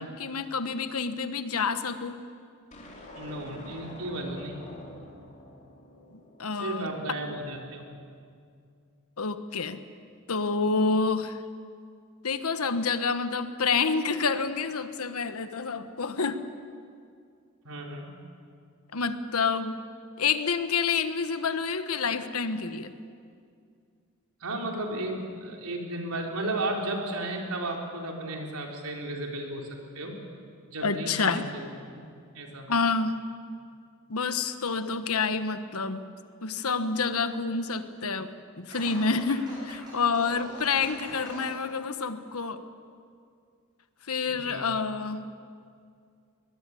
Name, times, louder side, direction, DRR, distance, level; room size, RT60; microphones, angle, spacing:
voice 1, 0.0-2.2 6.1-6.9 9.2-9.8 10.3-11.4 12.2-16.4 18.9-19.7 20.2-22.9 30.8-31.5 32.7-33.1 34.1-36.0 36.4-38.3 38.6-42.6 44.1-45.2, left 4 dB, 80° left, 10 dB, 1.2 m, -28 dB
sound 1, 2.7-7.1, left 1 dB, 35° left, 3.7 m, -47 dB
voice 2, 3.2-4.6 6.5-7.8 17.6-18.1 24.4-30.2 30.7-32.0 32.3-32.7 44.2-44.7, right 2 dB, 85° right, 1 dB, 4.0 m, -34 dB
Scratching (performance technique), 38.7-41.5, right 2 dB, 20° right, 7.9 m, -44 dB
22.5 x 20.5 x 8.5 m, 2.3 s
head